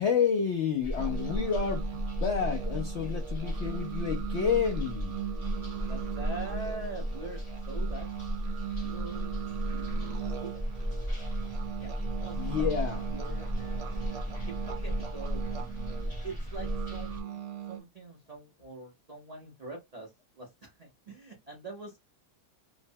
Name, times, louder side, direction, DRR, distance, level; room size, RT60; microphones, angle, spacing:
voice 1, 0.0-5.1 12.3-13.1, left 7 dB, 75° left, 0.6 m, -30 dB
sound 1, 0.8-17.2, equal, 30° left, 0.6 m, -35 dB
sound 2, 1.0-17.8, right 11 dB, 65° right, 1.1 m, -39 dB
voice 2, 5.9-8.1 8.8-9.3 9.7-10.6 11.8-12.7 13.1-15.4 16.2-17.4 17.7-20.1 20.4-22.0, right 2 dB, 90° right, 0.3 m, -44 dB
3.0 x 2.0 x 2.6 m
omnidirectional pair, 1.8 m